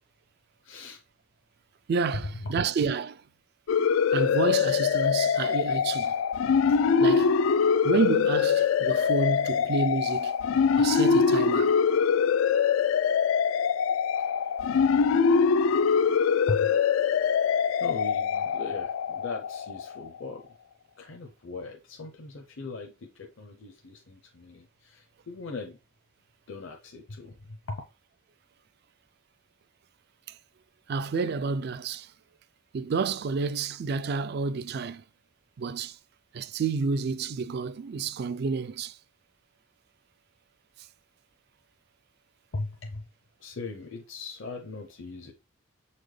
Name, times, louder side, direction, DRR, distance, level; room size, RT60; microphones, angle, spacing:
voice 1, 0.6-1.0 2.4-2.5 16.5-16.7 17.8-20.4 21.0-25.8 26.5-27.8 42.5-43.1 43.4-45.3, left 3 dB, 65° left, 0.7 m, -39 dB
voice 2, 1.9-3.2 4.1-6.2 7.0-7.3 7.8-10.3 10.8-11.8 30.9-32.1 32.7-35.0 35.6-36.0 36.3-39.0, right 4 dB, 55° right, 0.4 m, -29 dB
sound 1, 3.7-20.1, left 6 dB, 90° left, 0.3 m, -23 dB
7.0 x 4.1 x 3.2 m
head